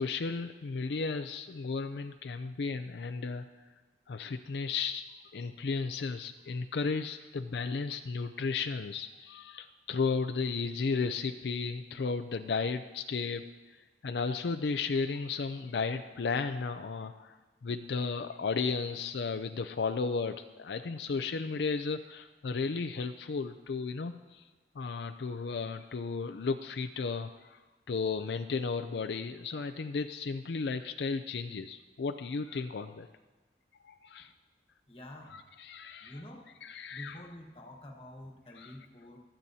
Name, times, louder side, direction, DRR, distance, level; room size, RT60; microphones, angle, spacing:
voice 1, 0.0-3.4 4.1-5.1 5.3-13.4 14.0-17.4 17.6-24.4 24.8-27.6 27.9-33.1 33.8-34.3 35.3-36.2 36.6-37.2 38.6-38.7, left 4 dB, 75° left, 7 dB, 0.4 m, -34 dB
voice 2, 34.9-35.4 36.0-36.5 36.9-39.2, left 1 dB, 30° left, 2 dB, 1.3 m, -48 dB
26.0 x 8.9 x 2.8 m, 1.2 s
head